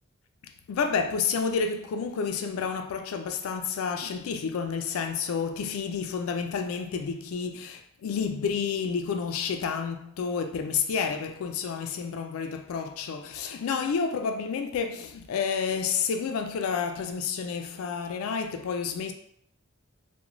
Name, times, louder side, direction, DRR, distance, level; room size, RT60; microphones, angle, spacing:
voice 1, 0.7-19.1, left 6 dB, 75° left, 0.3 m, -30 dB
2.4 x 2.1 x 3.0 m
head